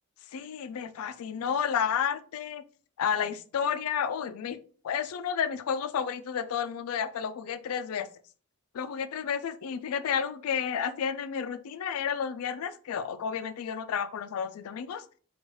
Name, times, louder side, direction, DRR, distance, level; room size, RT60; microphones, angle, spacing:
voice 1, 0.3-2.6 3.0-4.6 4.8-8.1 8.7-15.0, left 7 dB, 85° left, 13 dB, 0.3 m, -31 dB
4.4 x 2.4 x 3.1 m, 0.41 s
head